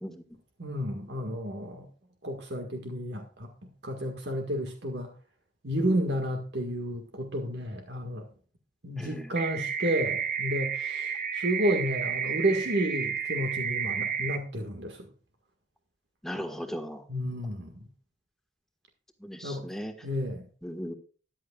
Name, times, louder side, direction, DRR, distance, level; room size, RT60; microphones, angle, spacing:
voice 1, 0.6-1.9 2.2-5.1 5.6-8.3 8.8-15.1 17.1-17.9 19.4-19.7 20.0-20.5, equal, 80° right, 1.7 m, -31 dB
voice 2, 9.0-9.3 16.2-17.0 19.2-19.9 20.6-20.9, equal, 5° left, 1.4 m, -37 dB
sound 1, 9.4-14.4, right 7 dB, 50° right, 1.2 m, -31 dB
14.0 x 10.5 x 2.4 m
head